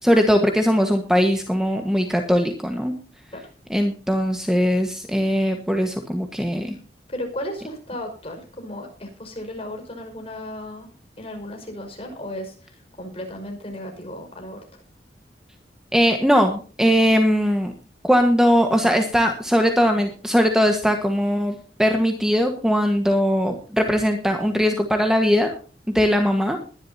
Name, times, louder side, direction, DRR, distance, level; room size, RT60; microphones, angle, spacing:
voice 1, 0.0-2.9 3.7-6.8 15.9-17.7 18.0-25.6 25.9-26.6, equal, 5° right, 4 dB, 1.4 m, -20 dB
voice 2, 7.1-14.8, left 1 dB, 35° left, 3 dB, 5.6 m, -35 dB
21.0 x 11.5 x 2.8 m, 0.39 s
head